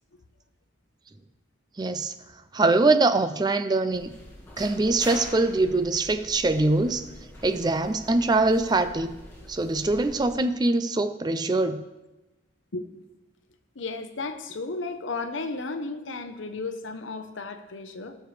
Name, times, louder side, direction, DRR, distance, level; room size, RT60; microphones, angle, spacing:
voice 1, 1.8-2.1 2.5-4.1 4.6-7.0 7.4-9.2 9.5-11.8, right 2 dB, 20° right, 11 dB, 0.4 m, -23 dB
sound 1, 3.9-10.3, left 1 dB, 10° left, 1.7 m, -44 dB
voice 2, 13.7-18.2, left 3 dB, 85° left, 8 dB, 0.9 m, -34 dB
17.5 x 6.6 x 3.3 m, 1.0 s
head